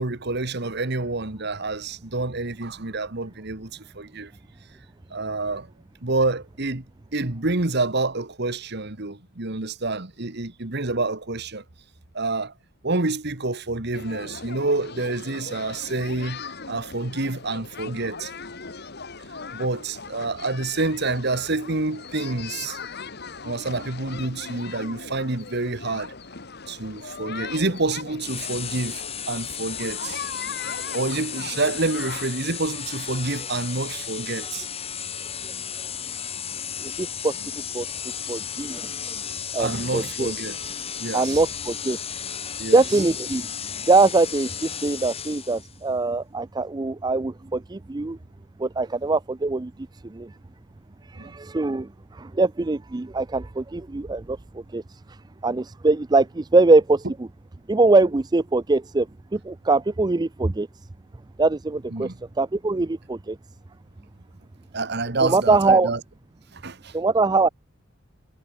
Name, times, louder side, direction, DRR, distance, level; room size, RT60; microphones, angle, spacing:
voice 1, 0.0-4.3 5.1-5.7 6.0-6.8 7.1-11.6 12.1-12.5 12.8-18.3 19.5-22.8 23.4-26.1 26.7-30.2 30.9-34.7 39.6-40.6 41.0-41.4 42.6-42.8 51.2-51.4 61.9-62.2 64.7-66.0 66.5-66.9, right 3 dB, 55° right, 1.7 m, -28 dB
sound 1, 13.9-32.3, left 5 dB, 55° left, 2.1 m, -39 dB
sound 2, 28.2-45.8, left 8 dB, 30° left, 1.5 m, -34 dB
voice 2, 36.8-37.3 37.7-37.9 38.3-39.1 39.5-40.3 41.1-42.0 42.7-43.5 43.9-48.2 48.6-49.7 50.0-50.3 51.1-54.8 55.4-57.0 57.7-59.1 59.3-60.7 61.4-62.1 62.4-63.4 65.2-65.9 66.9-67.5, right 3 dB, 20° right, 0.4 m, -22 dB
head